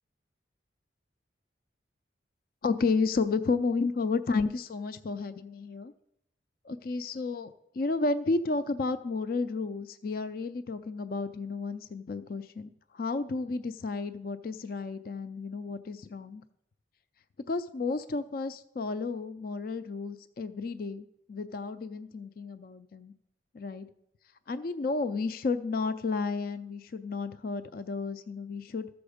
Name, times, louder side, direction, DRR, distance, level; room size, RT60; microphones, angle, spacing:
voice 1, 2.6-5.9 6.6-16.4 17.5-23.1 23.5-23.9 24.5-28.9, left 4 dB, 50° left, 12 dB, 0.4 m, -32 dB
13.5 x 7.0 x 5.0 m, 0.81 s
head